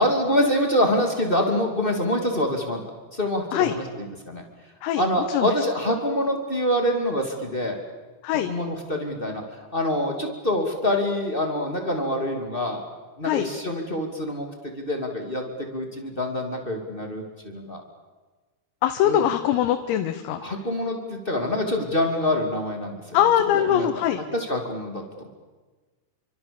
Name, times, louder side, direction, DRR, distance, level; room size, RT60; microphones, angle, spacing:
voice 1, 0.0-2.8 3.1-4.4 4.9-7.8 8.3-9.4 9.7-12.8 13.2-15.4 15.7-17.8 19.0-19.3 20.4-25.3, left 1 dB, 20° left, 2 dB, 1.3 m, -26 dB
voice 2, 18.8-20.4 23.1-24.2, left 11 dB, 90° left, 6 dB, 3.9 m, -22 dB
30.0 x 25.0 x 7.1 m, 1.3 s
omnidirectional pair, 5.9 m